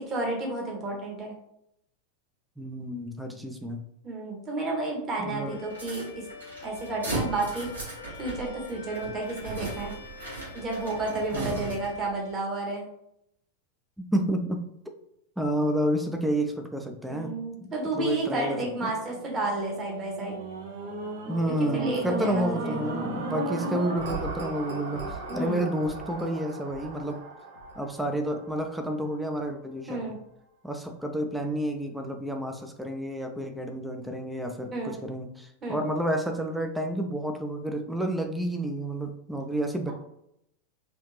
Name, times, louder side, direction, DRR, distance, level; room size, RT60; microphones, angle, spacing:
voice 1, 0.1-1.3 4.0-6.3 6.6-7.7 8.2-9.9 10.5-12.9 17.1-20.4 21.7-22.8 23.6-23.8 25.3-25.7 29.9-30.2 34.7-35.0 35.6-35.8, right 2 dB, 25° right, -1 dB, 1.3 m, -31 dB
voice 2, 2.6-3.9 5.2-5.6 11.3-11.7 14.0-14.7 15.4-17.3 17.6-17.7 17.9-18.9 21.3-27.2 27.8-30.1 30.6-39.9, right 1 dB, 5° right, 4 dB, 0.4 m, -30 dB
sound 1, 5.3-12.3, left 4 dB, 70° left, 0.5 m, -46 dB
sound 2, 5.7-12.0, right 2 dB, 75° right, 1.3 m, -37 dB
sound 3, 18.9-29.2 29.8-29.9, right 3 dB, 55° right, 0.8 m, -36 dB
3.4 x 2.7 x 3.2 m, 0.77 s
figure-of-eight pair, 90°, 0 cm